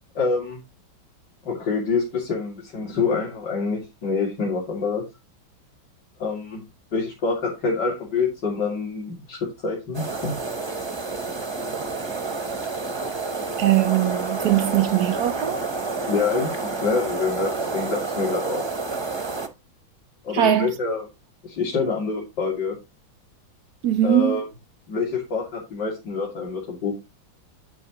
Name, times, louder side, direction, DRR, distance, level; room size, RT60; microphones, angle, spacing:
voice 1, 0.1-0.6 1.5-5.0 6.2-6.6 6.9-10.3 16.1-18.6 20.2-21.1 21.4-22.8 24.0-24.4 24.9-26.9, left 4 dB, 60° left, 2.9 m, -26 dB
sound 1, 9.9-19.5, right 4 dB, 25° right, 0.5 m, -29 dB
voice 2, 13.6-15.6 20.3-20.7 23.8-24.4, right 12 dB, 65° right, 1.0 m, -21 dB
8.4 x 7.9 x 3.0 m
omnidirectional pair, 2.1 m